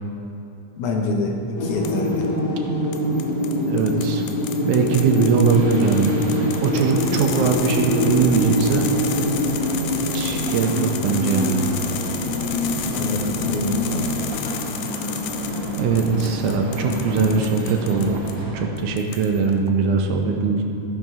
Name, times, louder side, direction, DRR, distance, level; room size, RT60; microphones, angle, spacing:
voice 1, 0.8-2.3 12.9-14.1, left 2 dB, 70° left, 2 dB, 2.2 m, -26 dB
sound 1, 1.6-18.1, left 1 dB, 45° left, 2.5 m, -25 dB
sound 2, 1.8-2.3 2.9-18.4 18.8-19.5, left 9 dB, 90° left, 2.4 m, -34 dB
voice 2, 3.7-4.2 4.6-8.9 10.1-11.8 15.8-18.2 18.5-20.6, right 5 dB, 75° right, 3 dB, 2.1 m, -21 dB
sound 3, 5.5-18.7, equal, 25° right, 0.7 m, -34 dB
14.0 x 10.5 x 3.7 m, 2.7 s
omnidirectional pair, 3.8 m